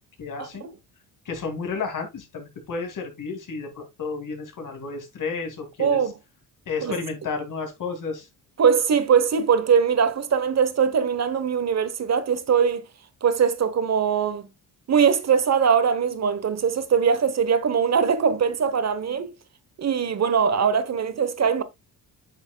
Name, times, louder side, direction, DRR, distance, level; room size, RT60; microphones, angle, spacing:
voice 1, 0.2-0.7 1.2-6.0 6.7-8.3, left 4 dB, 55° left, 2.6 m, -32 dB
voice 2, 5.8-6.1 6.8-7.0 8.6-12.8 13.2-14.5 14.9-19.3 19.8-21.6, right 6 dB, 45° right, 1.1 m, -21 dB
8.5 x 6.3 x 2.3 m
cardioid pair, 100°, 38 cm